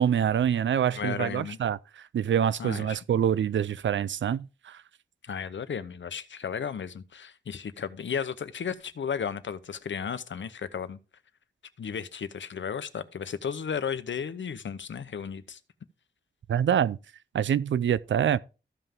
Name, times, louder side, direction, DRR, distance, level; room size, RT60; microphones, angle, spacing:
voice 1, 0.0-4.8 16.5-17.0 17.3-18.4, right 9 dB, 85° right, 0.4 m, -26 dB
voice 2, 0.9-1.6 2.6-3.0 5.2-11.0 11.8-15.6, left 7 dB, 85° left, 0.8 m, -34 dB
14.0 x 5.7 x 3.6 m
wide cardioid pair, 105°, 19 cm